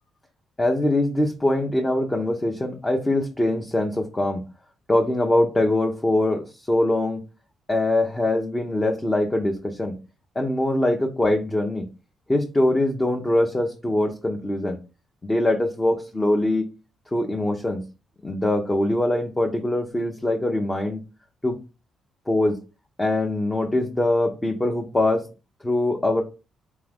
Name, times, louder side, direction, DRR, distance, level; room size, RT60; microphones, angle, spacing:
voice 1, 0.6-4.4 4.9-7.2 7.7-10.0 10.3-11.9 12.3-14.8 15.2-16.6 17.1-17.8 18.2-21.0 21.4-21.5 22.3-22.6 23.0-25.3 25.6-26.2, left 1 dB, 15° left, 1 dB, 0.8 m, -23 dB
3.6 x 3.6 x 3.4 m, 0.31 s
cardioid pair, 90°, 0 cm